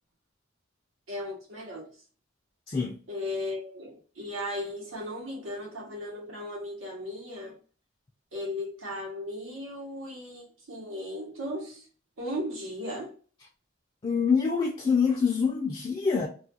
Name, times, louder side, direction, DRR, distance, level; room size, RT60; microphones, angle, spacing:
voice 1, 1.1-2.0 3.1-7.5 8.3-11.9 12.2-13.2, left 1 dB, 90° right, 0.9 m, -36 dB
voice 2, 2.7-3.0 14.0-16.3, left 5 dB, 25° left, 0.4 m, -25 dB
2.3 x 2.2 x 2.7 m
head